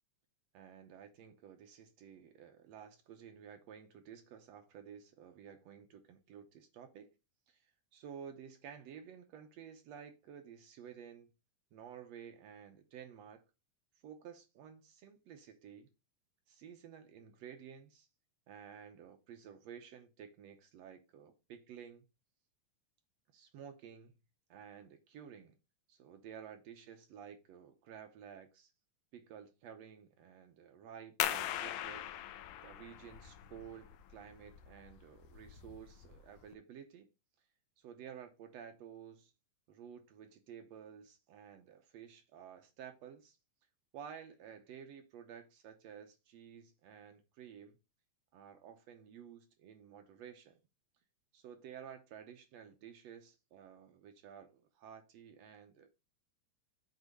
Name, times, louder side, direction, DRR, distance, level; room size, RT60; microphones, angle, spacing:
voice 1, 0.5-7.1 7.5-11.3 11.7-13.4 14.0-15.9 16.5-18.1 18.5-22.0 23.3-24.1 24.5-25.6 25.9-28.7 29.1-32.0 32.6-37.1 37.8-39.3 39.7-43.4 43.9-47.8 48.3-50.6 51.3-55.9, right 8 dB, 70° right, 1.7 m, -53 dB
sound 1, 31.2-36.5, left 11 dB, 80° left, 1.9 m, -41 dB
8.1 x 3.3 x 5.2 m
omnidirectional pair, 3.8 m